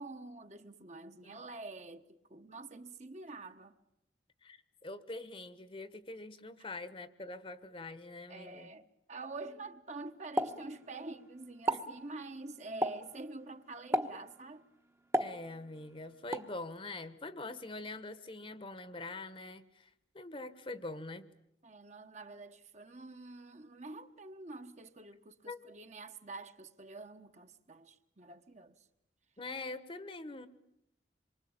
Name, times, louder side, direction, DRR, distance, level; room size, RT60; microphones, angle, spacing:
voice 1, 0.0-3.8 6.6-6.7 8.3-14.6 21.6-28.8, right 3 dB, 40° right, 1.2 m, -47 dB
voice 2, 4.4-8.7 11.7-11.8 15.2-19.9 20.1-21.2 25.5-25.6 29.4-30.5, left 2 dB, 30° left, 1.2 m, -44 dB
Explosion, 10.4-11.2 11.5-12.0 12.8-13.2 13.9-14.3 15.1-15.8 16.3-16.6, right 1 dB, 15° right, 1.1 m, -33 dB
26.5 x 24.0 x 8.8 m
head